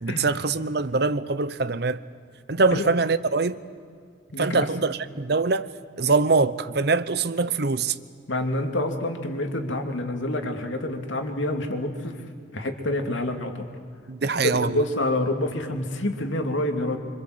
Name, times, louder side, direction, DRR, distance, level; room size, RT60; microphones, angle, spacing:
voice 1, 0.0-2.0 2.5-3.6 4.4-5.7 6.0-8.0 14.1-14.8, right 4 dB, 55° right, 0.8 m, -23 dB
voice 2, 4.3-4.7 8.3-12.2 12.5-13.7 14.4-17.0, left 1 dB, 80° left, 2.7 m, -27 dB
26.0 x 26.0 x 7.9 m
head